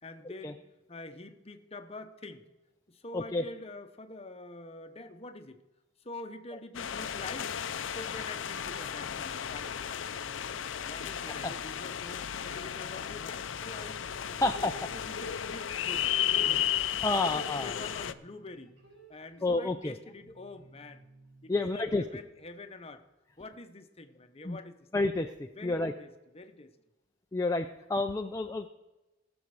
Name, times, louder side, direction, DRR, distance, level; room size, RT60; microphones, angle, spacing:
voice 1, 0.0-2.4 2.9-5.6 6.0-7.6 7.9-10.6 10.9-14.0 14.3-16.6 17.1-18.7 19.1-21.0 21.4-23.0 23.4-24.8 25.5-26.7, left 2 dB, 30° left, 8 dB, 0.9 m, -46 dB
voice 2, 3.1-3.4 11.3-11.5 14.4-14.7 17.0-17.7 19.4-19.9 21.5-22.0 24.4-24.6 24.9-25.3 25.6-25.9 27.3-28.7, left 2 dB, 15° left, 4 dB, 0.4 m, -29 dB
sound 1, 6.7-18.1, left 10 dB, 80° left, 0.5 m, -34 dB
sound 2, 8.5-10.0 10.5-22.7, right 1 dB, 85° right, 5.4 m, -60 dB
18.5 x 7.1 x 4.9 m, 1.1 s
head